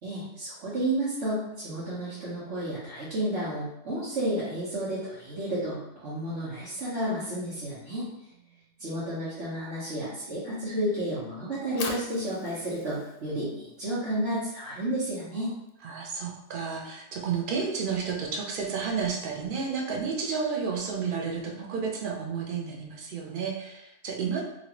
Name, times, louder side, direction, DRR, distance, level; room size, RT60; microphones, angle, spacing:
voice 1, 0.0-8.1 8.8-15.5, right 1 dB, 85° right, -11 dB, 1.3 m, -31 dB
Fire, 11.5-17.7, left 3 dB, 60° left, 0.7 m, -44 dB
voice 2, 15.8-24.4, right 6 dB, 55° right, -1 dB, 0.7 m, -31 dB
3.1 x 2.5 x 2.9 m, 0.86 s
omnidirectional pair, 1.2 m